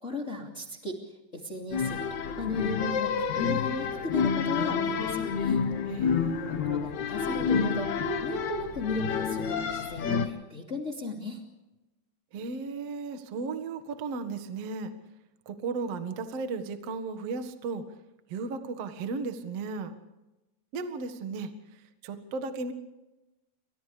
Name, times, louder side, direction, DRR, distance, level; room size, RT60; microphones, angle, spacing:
voice 1, 0.0-5.6 6.4-11.4, left 2 dB, 25° left, 1 dB, 1.7 m, -36 dB
sound 1, 1.7-10.3, left 6 dB, 85° left, 1.6 m, -29 dB
voice 2, 5.9-6.6 12.3-14.9 15.4-17.8 18.3-19.9 20.7-22.7, right 4 dB, 80° right, 8 dB, 1.4 m, -35 dB
29.0 x 26.5 x 3.5 m, 1.0 s
omnidirectional pair, 5.7 m